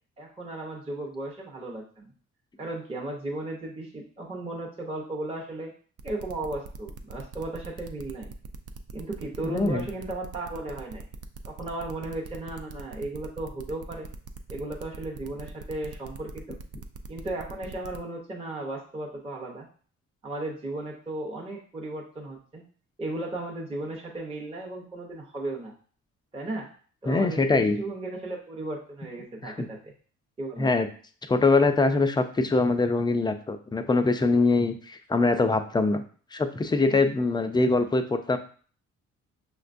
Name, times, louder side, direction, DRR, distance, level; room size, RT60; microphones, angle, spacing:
voice 1, 0.2-2.1 2.6-5.7 6.0-8.3 8.9-11.1 11.4-14.1 14.5-16.6 17.1-19.7 20.2-22.6 23.0-25.7 26.3-26.7 27.0-29.9 30.4-30.7, right 2 dB, 20° right, -2 dB, 0.7 m, -35 dB
sound 1, 6.0-18.0, right 5 dB, 55° right, 0.5 m, -43 dB
voice 2, 9.4-9.9 27.1-27.8 29.4-29.7 30.6-30.9 31.3-36.0 36.3-38.4, left 3 dB, 15° left, 7 dB, 0.4 m, -23 dB
5.6 x 2.2 x 2.5 m, 0.43 s
cardioid pair, 90°, 30 cm